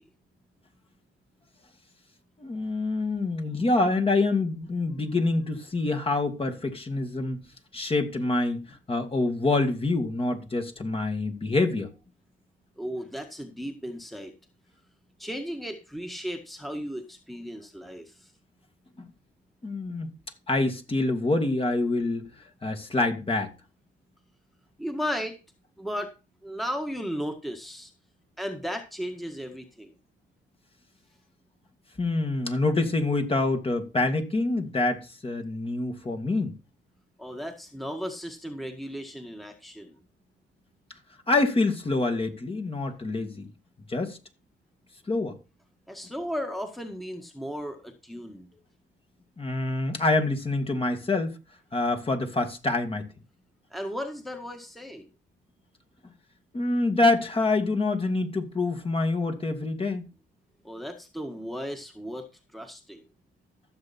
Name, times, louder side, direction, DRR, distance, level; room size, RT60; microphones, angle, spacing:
voice 1, 2.4-7.4 7.7-11.9 19.0-19.1 19.6-20.1 20.5-22.2 22.6-23.5 32.0-36.5 41.3-43.5 43.9-44.2 45.1-45.4 49.4-51.4 51.7-53.1 56.5-60.1, left 2 dB, 30° left, 2.2 m, -26 dB
voice 2, 12.8-14.3 15.2-18.3 24.8-25.4 25.8-26.1 26.4-27.9 28.4-29.9 37.2-40.0 45.9-48.5 53.7-55.0 60.6-62.2 62.5-63.0, equal, ahead, 1.7 m, -35 dB
14.5 x 7.1 x 4.4 m
cardioid pair, 90°, 20 cm